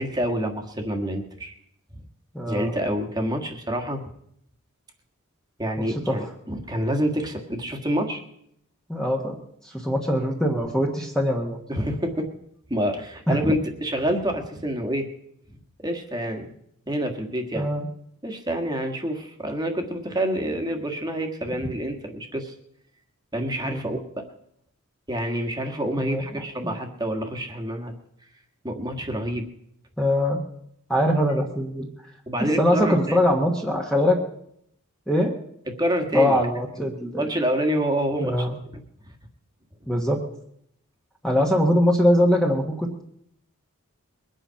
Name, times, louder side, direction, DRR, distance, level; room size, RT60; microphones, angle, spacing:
voice 1, 0.0-1.5 1.9-2.0 2.5-4.0 5.6-8.2 11.7-12.3 12.7-15.1 15.8-16.5 16.9-17.7 18.2-22.5 23.3-24.2 25.1-27.9 28.6-29.5 32.3-33.2 35.8-36.4 37.2-38.4, equal, 20° right, 4 dB, 1.6 m, -27 dB
voice 2, 2.3-2.7 6.1-6.3 8.9-9.4 9.6-11.6 13.3-13.5 17.5-17.9 23.6-23.9 26.0-26.4 30.0-30.4 30.9-31.9 32.6-34.2 35.1-35.3 36.1-37.2 38.2-38.6 39.9-40.2 41.2-43.0, equal, 5° left, 0 dB, 1.4 m, -22 dB
22.0 x 9.0 x 5.8 m, 0.73 s
head